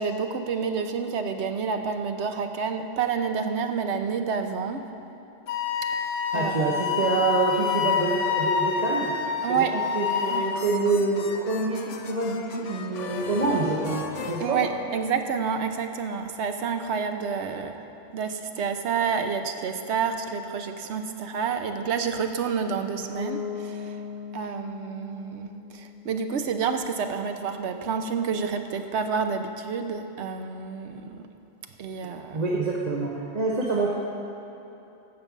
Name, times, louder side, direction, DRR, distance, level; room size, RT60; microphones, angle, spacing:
voice 1, 0.0-4.9 5.9-6.8 9.4-9.7 10.3-10.5 14.4-17.8 18.1-24.0 24.3-31.3 31.8-32.4, right 6 dB, 65° right, 6 dB, 1.0 m, -29 dB
Wind instrument woodwind instrument, 5.5-10.6, left 7 dB, 90° left, 1.2 m, -27 dB
voice 2, 6.3-9.2 9.5-14.6 32.3-33.9, right 3 dB, 35° right, -4 dB, 1.0 m, -26 dB
sound 1, 10.0-15.3, left 5 dB, 70° left, 1.0 m, -39 dB
Bass guitar, 23.1-27.0, left 6 dB, 20° left, 1.4 m, -38 dB
14.5 x 5.4 x 7.2 m, 2.9 s
omnidirectional pair, 1.3 m